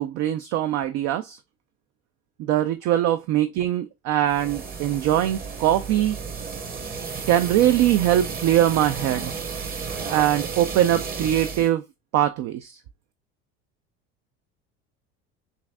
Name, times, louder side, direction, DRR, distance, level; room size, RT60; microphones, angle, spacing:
voice 1, 0.0-1.4 2.4-6.2 7.3-9.3 10.1-11.8 12.1-12.8, right 12 dB, 55° right, 0.4 m, -22 dB
sound 1, 4.2-11.7, right 5 dB, 30° right, 0.9 m, -33 dB
5.7 x 2.6 x 2.2 m
supercardioid pair, 90°, 32 cm